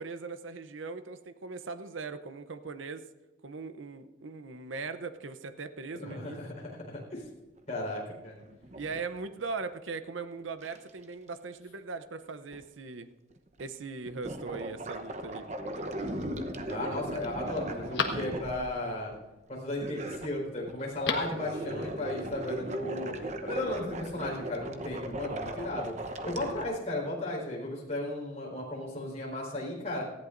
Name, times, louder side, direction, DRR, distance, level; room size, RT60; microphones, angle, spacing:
voice 1, 0.0-3.0 3.4-6.4 8.7-13.1 13.6-15.4, right 4 dB, 80° right, 10 dB, 0.7 m, -39 dB
voice 2, 5.9-7.2 7.7-8.3 16.7-19.1 19.5-23.1 23.4-25.9 26.2-30.0, left 1 dB, 35° left, -2 dB, 4.5 m, -35 dB
sound 1, 7.8-7.9 8.4-9.4 10.6-11.0 12.5-12.6 13.3-13.6 14.1-19.2 19.8-20.9 21.2-26.6, right 1 dB, 35° right, 0.9 m, -38 dB
Telephone, 15.7-16.2 16.8-16.9 17.3-18.8 20.8-21.4 21.7-21.8, left 5 dB, 65° left, 1.5 m, -36 dB
19.0 x 15.0 x 2.6 m, 1.1 s
head